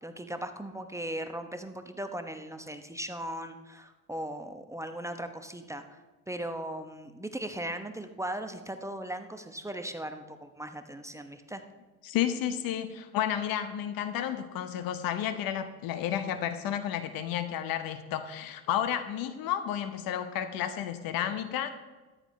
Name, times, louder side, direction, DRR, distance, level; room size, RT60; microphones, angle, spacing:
voice 1, 0.0-6.0 6.3-11.6, right 1 dB, 5° right, 7 dB, 0.9 m, -38 dB
voice 2, 12.0-21.7, left 10 dB, 55° left, 10 dB, 1.1 m, -31 dB
13.5 x 10.5 x 3.2 m, 1.2 s
hypercardioid pair, 75°, 43 cm